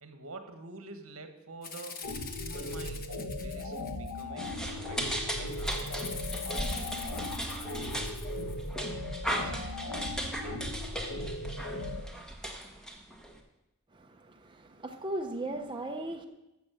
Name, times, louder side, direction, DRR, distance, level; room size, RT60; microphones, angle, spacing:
voice 1, 0.0-3.1 3.4-6.1 6.4-8.5 9.4-9.7, right 3 dB, 70° right, 7 dB, 1.5 m, -49 dB
Rattle (instrument), 1.6-4.5 5.5-8.7, left 6 dB, 45° left, 1.0 m, -44 dB
sound 1, 2.0-12.0, left 1 dB, 85° left, 1.2 m, -37 dB
sound 2, 4.4-13.4, equal, 5° left, 1.3 m, -37 dB
voice 2, 13.9-16.3, right 1 dB, 20° right, 3 dB, 0.7 m, -37 dB
13.5 x 7.4 x 6.2 m, 0.96 s
head